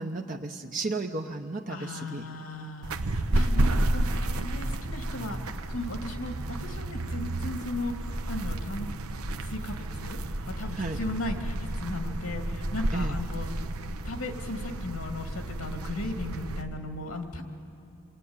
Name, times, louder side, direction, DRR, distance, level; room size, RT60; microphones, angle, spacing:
voice 1, 0.0-2.3 10.8-11.0 12.9-13.2, right 3 dB, 35° right, 3 dB, 0.8 m, -33 dB
voice 2, 1.7-5.4 5.7-8.9 9.4-10.2 10.6-13.5 14.0-17.4, left 2 dB, 85° left, 4 dB, 2.3 m, -36 dB
sound 1, 2.8-16.6, right 1 dB, 80° right, 1.0 m, -31 dB
27.0 x 19.0 x 9.6 m, 2.5 s
head